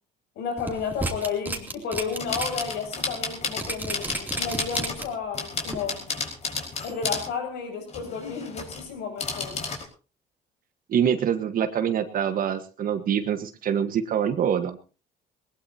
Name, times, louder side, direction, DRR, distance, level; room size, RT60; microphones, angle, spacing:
voice 1, 0.4-6.1 6.8-9.6, left 5 dB, 80° left, 5 dB, 7.5 m, -32 dB
sound 1, 0.6-2.6 3.0-3.1 3.6-5.2 5.7-5.8, right 2 dB, 10° right, 2.9 m, -32 dB
sound 2, 2.2-5.1 5.3-7.3 7.9-8.9 9.2-9.8, left 4 dB, 40° left, 5.0 m, -32 dB
voice 2, 10.9-14.8, right 8 dB, 55° right, 8 dB, 1.5 m, -25 dB
20.0 x 19.5 x 2.9 m, 0.35 s
cardioid pair, 110°, 17 cm